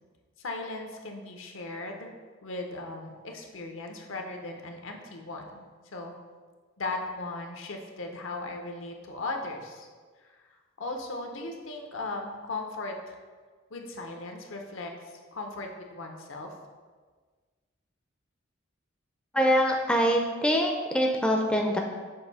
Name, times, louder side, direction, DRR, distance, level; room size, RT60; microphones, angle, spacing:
voice 1, 0.4-2.1 2.4-5.6 5.9-6.1 6.8-9.9 10.8-13.2 13.7-14.9 15.3-16.5, left 2 dB, 80° left, 3 dB, 0.8 m, -37 dB
voice 2, 19.3-21.8, equal, 5° left, 1 dB, 0.4 m, -24 dB
6.4 x 2.6 x 5.5 m, 1.5 s
head